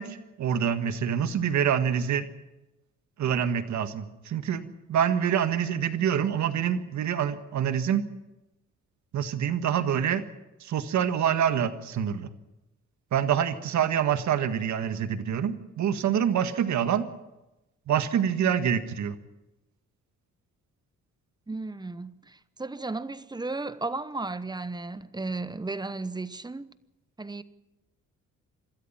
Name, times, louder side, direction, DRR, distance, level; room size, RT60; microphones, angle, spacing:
voice 1, 0.0-2.3 3.2-8.0 9.1-10.2 10.6-12.3 13.1-17.1 17.9-19.2, right 8 dB, 70° right, 1.7 m, -26 dB
voice 2, 21.5-26.7 27.2-27.4, right 3 dB, 15° right, 0.9 m, -34 dB
26.0 x 13.5 x 7.5 m
cardioid pair, 90°, 30 cm